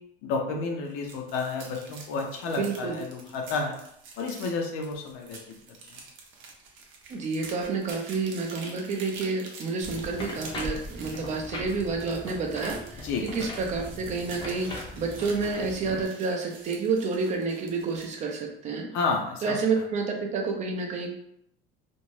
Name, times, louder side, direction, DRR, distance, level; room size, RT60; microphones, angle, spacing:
voice 1, 0.2-3.8 4.2-5.4 5.9-6.0 13.0-13.2 18.9-19.8, left 4 dB, 75° left, 1 dB, 0.6 m, -31 dB
sound 1, 0.8-18.2, right 4 dB, 70° right, 0.7 m, -47 dB
voice 2, 2.6-3.0 7.1-18.9 19.4-21.1, right 4 dB, 35° right, 2 dB, 0.5 m, -29 dB
sound 2, 9.8-16.0, left 2 dB, 20° left, 0.6 m, -39 dB
2.6 x 2.1 x 3.1 m, 0.73 s
cardioid pair, 150°, 21 cm